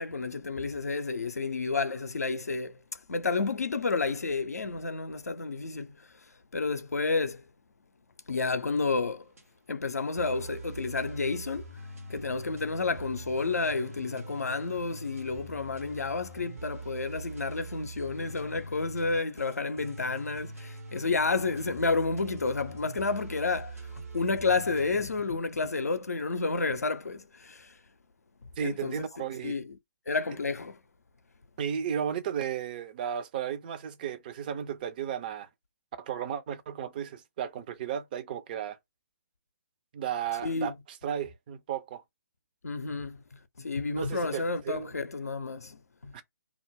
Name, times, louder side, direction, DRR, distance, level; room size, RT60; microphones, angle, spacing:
voice 1, 0.0-2.8 3.1-6.1 6.5-7.5 8.3-9.2 9.7-11.8 12.1-27.7 28.6-29.0 29.4-29.8 30.1-30.8 40.4-40.7 42.6-43.2 43.6-46.1, left 4 dB, 75° left, 0.5 m, -30 dB
sound 1, 9.0-9.4 10.2-24.9, right 1 dB, 65° right, 0.9 m, -44 dB
voice 2, 28.6-29.5 31.6-35.5 36.0-38.8 39.9-40.7 41.0-42.0 43.8-44.9 46.1-46.2, right 9 dB, 35° right, 0.5 m, -34 dB
2.3 x 2.0 x 3.4 m
figure-of-eight pair, 135°, 8 cm